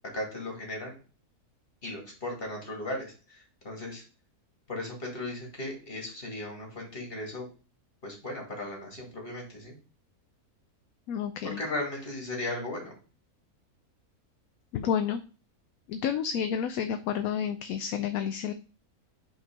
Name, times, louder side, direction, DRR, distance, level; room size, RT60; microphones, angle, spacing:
voice 1, 0.1-1.0 1.8-4.0 4.7-7.5 8.0-9.8 11.4-13.0, left 2 dB, 40° left, 0 dB, 2.5 m, -36 dB
voice 2, 11.1-11.6 14.7-15.2 15.9-18.5, left 8 dB, 75° left, 9 dB, 1.0 m, -30 dB
5.5 x 4.5 x 5.2 m, 0.37 s
omnidirectional pair, 1.6 m